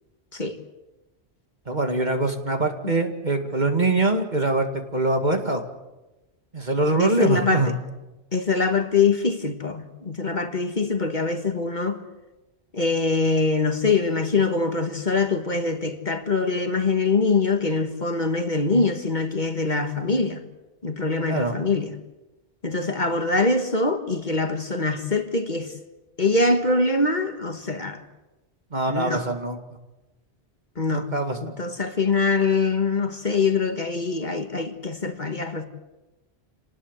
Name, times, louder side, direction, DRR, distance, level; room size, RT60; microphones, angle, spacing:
voice 1, 1.7-5.6 6.5-7.7 21.3-21.5 28.7-29.6 30.9-31.4, right 2 dB, 40° right, 2.4 m, -23 dB
voice 2, 7.0-7.8 8.3-12.0 12.7-20.4 20.8-21.9 22.6-25.7 26.2-28.0 28.9-29.3 30.8-31.1 31.4-35.6, left 3 dB, 45° left, 1.8 m, -23 dB
27.5 x 19.5 x 8.2 m
omnidirectional pair, 1.1 m